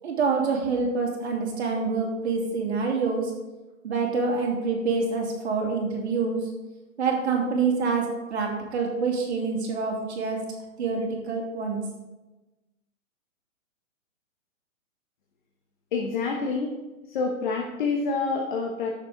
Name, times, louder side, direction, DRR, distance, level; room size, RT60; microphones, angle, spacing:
voice 1, 0.0-3.3 3.8-6.4 7.0-10.4 10.8-11.8, right 4 dB, 55° right, -1 dB, 2.7 m, -26 dB
voice 2, 15.9-16.7 17.1-18.9, left 4 dB, 35° left, 1 dB, 1.1 m, -27 dB
13.5 x 6.9 x 3.9 m, 1.1 s
hypercardioid pair, 160°, 41 cm